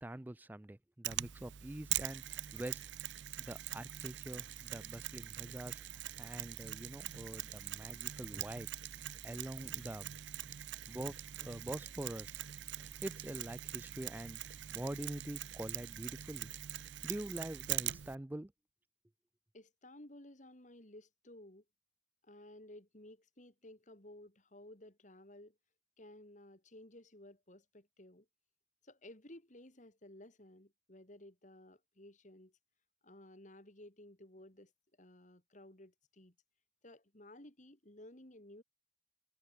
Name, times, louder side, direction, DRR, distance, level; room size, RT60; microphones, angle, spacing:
voice 1, 0.0-2.8 3.4-8.7 9.2-10.2 10.4-10.5 10.9-12.4 12.8-14.4 14.7-16.5 17.0-18.5, right 1 dB, 10° right, 0.4 m, -45 dB
Mechanisms, 1.0-18.1, right 13 dB, 90° right, 0.6 m, -43 dB
voice 2, 19.5-21.6 22.2-25.6 26.0-28.3 28.8-32.5 33.0-34.7 35.0-36.3 36.8-38.6, left 1 dB, 45° left, 3.5 m, -56 dB
head